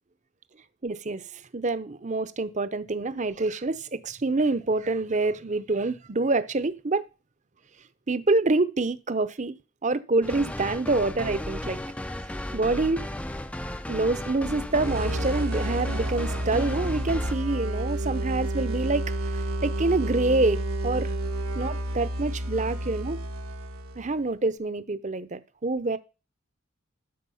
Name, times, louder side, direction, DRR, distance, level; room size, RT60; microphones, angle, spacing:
voice 1, 0.8-7.0 8.1-9.6 9.8-11.8 12.5-13.1 13.9-21.1 21.5-23.2 24.0-26.0, right 3 dB, 35° right, 0.7 m, -26 dB
sound 1, 10.2-17.4, left 1 dB, 5° left, 0.4 m, -34 dB
sound 2, 14.7-24.2, right 1 dB, 90° right, 1.5 m, -30 dB
12.5 x 4.8 x 7.1 m
head